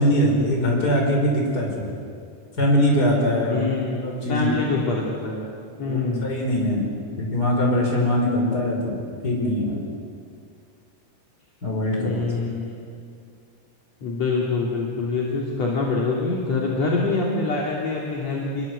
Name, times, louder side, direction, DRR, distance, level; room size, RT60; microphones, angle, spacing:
voice 1, 0.0-1.8 2.6-3.7 4.0-4.5 5.8-6.9 7.2-9.9 11.6-12.2, equal, 25° left, -1 dB, 6.0 m, -22 dB
voice 2, 3.5-5.5 5.8-6.4 12.0-12.9 14.0-18.7, left 3 dB, 55° left, -3 dB, 3.8 m, -25 dB
26.0 x 22.0 x 8.3 m, 2.3 s
omnidirectional pair, 3.7 m